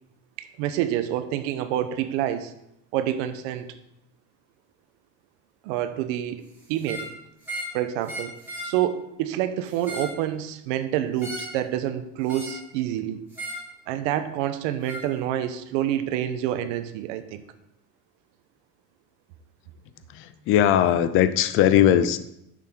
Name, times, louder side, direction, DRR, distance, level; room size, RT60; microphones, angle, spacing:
voice 1, 0.4-2.5 2.9-3.7 5.6-6.4 6.7-7.1 7.7-8.3 8.6-13.2 13.9-17.4, right 11 dB, 85° right, 10 dB, 0.9 m, -27 dB
sound 1, 6.8-7.1 7.4-7.8 8.0-8.7 9.7-10.2 11.2-11.6 12.3-12.6 13.3-13.7 14.9-15.1, equal, 5° right, 3.7 m, -36 dB
voice 2, 20.1-22.2, left 10 dB, 35° left, 13 dB, 0.5 m, -19 dB
10.0 x 6.6 x 3.7 m, 0.78 s
cardioid pair, 165°, 36 cm